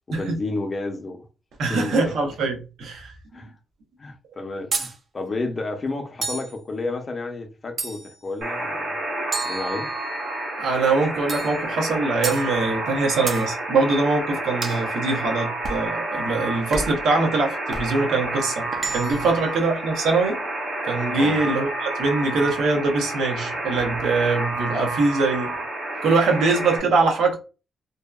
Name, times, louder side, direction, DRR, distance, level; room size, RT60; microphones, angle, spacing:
voice 1, 0.1-1.2 1.6-2.0 3.3-3.5 4.0-8.9 9.4-9.9 21.1-21.4, left 2 dB, 30° left, 0.5 m, -31 dB
voice 2, 1.6-3.1 10.6-20.4 20.8-25.5 26.0-27.4, right 3 dB, 85° right, 0.7 m, -23 dB
sound 1, 4.7-5.0 6.2-6.6 7.8-8.2 9.3-10.2 11.3-11.6 12.2-12.5 13.3-13.5 14.6-14.9 15.6-15.9 16.7-17.1 17.7-17.9 18.7-19.3, right 3 dB, 45° right, 0.4 m, -30 dB
Alarm, 8.4-26.8, right 2 dB, 65° right, 1.4 m, -29 dB
2.7 x 2.3 x 2.3 m
cardioid pair, 145°, 0 cm